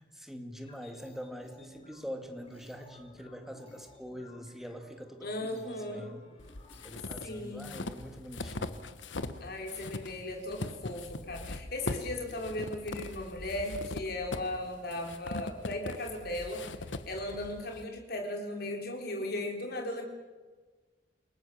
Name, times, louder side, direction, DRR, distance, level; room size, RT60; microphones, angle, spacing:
voice 1, 0.0-6.2 6.8-8.8, equal, ahead, 5 dB, 2.2 m, -44 dB
sound 1, 0.5-7.4, left 2 dB, 35° left, 4.6 m, -57 dB
voice 2, 5.2-6.1 7.2-7.8 9.4-20.0, left 1 dB, 55° left, 2 dB, 4.4 m, -37 dB
sound 2, 6.4-9.4 9.7-17.8, left 2 dB, 80° left, 1.3 m, -40 dB
29.0 x 18.0 x 7.3 m, 1.3 s
head